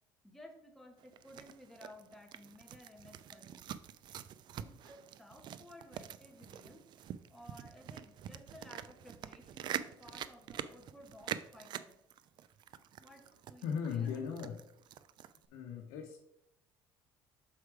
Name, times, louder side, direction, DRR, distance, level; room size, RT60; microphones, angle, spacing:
voice 1, 0.2-3.7 4.6-6.8 7.3-11.9 13.0-14.5, left 1 dB, 5° left, 1 dB, 1.6 m, -56 dB
sound 1, 1.0-15.5, right 10 dB, 55° right, 0.4 m, -46 dB
voice 2, 13.6-14.6 15.5-16.2, left 7 dB, 85° left, 0 dB, 1.0 m, -37 dB
6.6 x 4.7 x 4.8 m, 0.78 s
cardioid pair, 105°, 9 cm